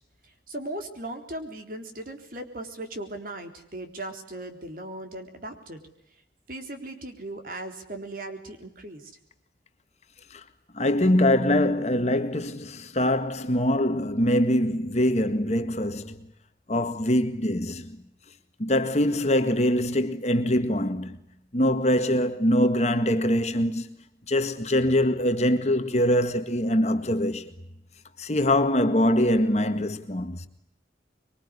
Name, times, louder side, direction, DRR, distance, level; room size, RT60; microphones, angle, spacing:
voice 1, 0.2-5.8 6.5-9.1, right 1 dB, 50° right, 3.8 m, -38 dB
voice 2, 10.7-16.3 16.7-18.0 18.6-21.2 21.5-23.9 24.3-27.5 28.2-30.5, left 1 dB, 40° left, 1.8 m, -23 dB
25.0 x 23.0 x 9.8 m
head